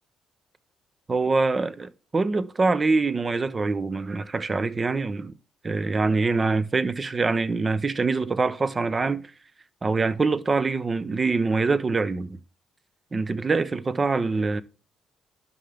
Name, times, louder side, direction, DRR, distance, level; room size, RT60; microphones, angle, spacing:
voice 1, 1.1-5.3 5.6-9.2 9.8-12.4 13.1-14.6, right 3 dB, 30° right, 0.7 m, -24 dB
11.0 x 5.7 x 3.4 m
cardioid pair, 90°, 0 cm